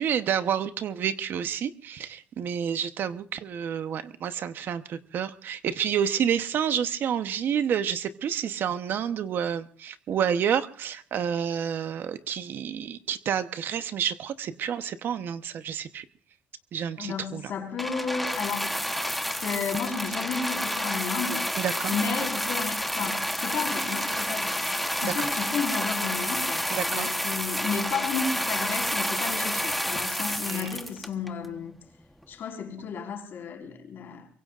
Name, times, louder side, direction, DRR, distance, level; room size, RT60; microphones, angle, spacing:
voice 1, 0.0-16.1 16.7-17.4 21.6-21.9 25.0-25.3 26.7-27.1 30.4-30.7, right 8 dB, 60° right, 1.0 m, -29 dB
voice 2, 17.0-18.8 19.3-21.5 21.9-31.7 32.3-34.3, left 6 dB, 60° left, 4.6 m, -33 dB
sound 1, 17.8-31.5 32.2-32.3, equal, ahead, 1.1 m, -29 dB
24.0 x 23.0 x 2.5 m
cardioid pair, 115°, 4 cm